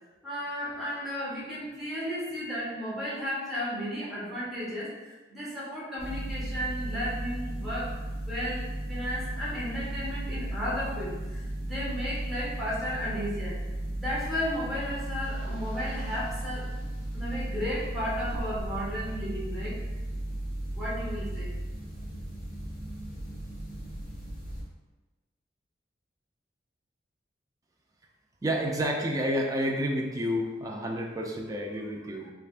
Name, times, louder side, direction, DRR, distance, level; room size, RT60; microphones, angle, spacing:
voice 1, 0.2-8.0 8.3-13.6 13.9-16.7 17.1-19.8 20.7-21.5, equal, ahead, -9 dB, 1.0 m, -34 dB
sound 1, 6.0-24.6, right 1 dB, 50° left, 1.4 m, -35 dB
voice 2, 28.4-32.3, equal, 20° right, 0 dB, 0.3 m, -30 dB
3.3 x 3.3 x 2.4 m, 1.2 s
head